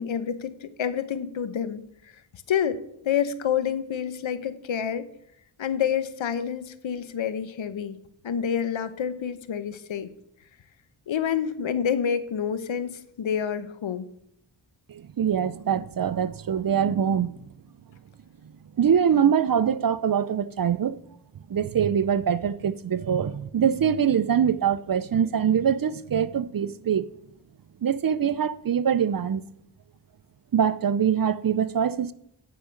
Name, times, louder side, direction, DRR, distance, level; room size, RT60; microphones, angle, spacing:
voice 1, 0.0-1.8 2.5-5.0 5.6-10.1 11.1-14.1, left 8 dB, 75° left, 0.9 m, -28 dB
voice 2, 14.9-17.3 18.8-20.9 21.5-27.1 27.8-29.4 30.5-32.1, right 8 dB, 45° right, 0.6 m, -23 dB
9.9 x 5.0 x 6.5 m
cardioid pair, 50°, 47 cm